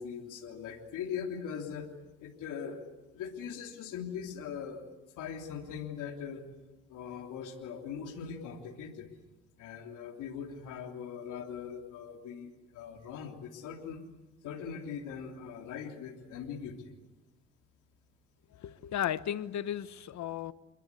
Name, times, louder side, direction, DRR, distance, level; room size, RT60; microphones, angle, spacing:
voice 1, 0.0-1.9 2.2-2.8 3.1-4.8 5.1-6.4 6.9-9.1 9.6-14.0 14.4-16.9, left 7 dB, 90° left, 3 dB, 3.3 m, -41 dB
voice 2, 18.6-20.5, left 10 dB, 70° left, 14 dB, 1.2 m, -34 dB
28.5 x 21.5 x 8.4 m, 1.1 s
cardioid pair, 90°, 30 cm